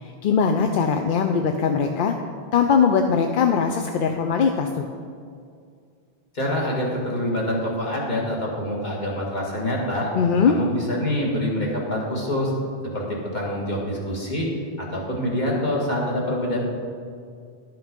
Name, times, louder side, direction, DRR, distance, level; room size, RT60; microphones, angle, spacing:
voice 1, 0.0-2.1 2.5-4.9 10.1-10.6, left 6 dB, 60° left, 5 dB, 0.6 m, -21 dB
voice 2, 6.3-10.1 10.5-12.5 12.9-14.5 14.8-16.6, left 1 dB, 45° left, -3 dB, 1.9 m, -26 dB
11.5 x 5.9 x 5.2 m, 2.2 s
omnidirectional pair, 1.1 m